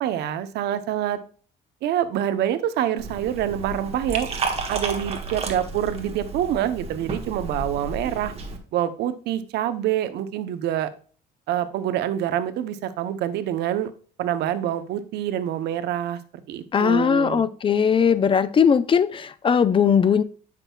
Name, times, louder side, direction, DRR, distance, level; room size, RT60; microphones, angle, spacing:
voice 1, 0.0-1.2 1.8-4.3 4.7-8.3 8.7-10.9 11.5-13.9 14.2-16.2 16.5-17.4, right 11 dB, 75° right, 0.8 m, -26 dB
Liquid, 3.0-8.6, right 3 dB, 35° right, 1.3 m, -32 dB
voice 2, 16.7-20.2, left 7 dB, 30° left, 0.5 m, -19 dB
9.0 x 6.0 x 2.3 m
cardioid pair, 110°, 17 cm